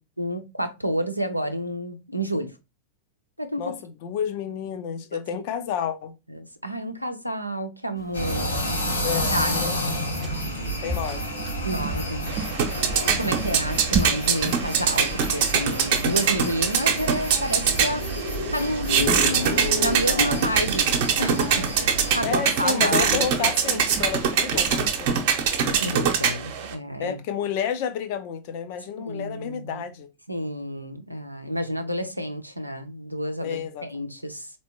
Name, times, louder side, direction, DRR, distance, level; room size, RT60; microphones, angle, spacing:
voice 1, 0.2-2.5 3.4-3.7 5.3-5.4 6.3-8.8 9.2-9.7 11.6-12.3 13.2-18.2 18.5-20.9 21.2-23.8 25.8-27.2 29.0-29.8 30.3-34.5, equal, 90° right, 0.6 m, -30 dB
voice 2, 3.6-6.2 8.2-8.6 9.0-9.8 10.8-11.2 12.9-13.2 22.2-25.1 27.0-30.1 33.4-33.9, left 8 dB, 45° left, 0.6 m, -31 dB
sound 1, 8.0-25.1, right 4 dB, 25° right, 0.5 m, -38 dB
sound 2, 8.1-22.2, equal, 75° left, 1.3 m, -30 dB
sound 3, 12.3-26.7, right 7 dB, 50° right, 0.8 m, -24 dB
4.2 x 3.0 x 2.9 m
figure-of-eight pair, 90°, 0 cm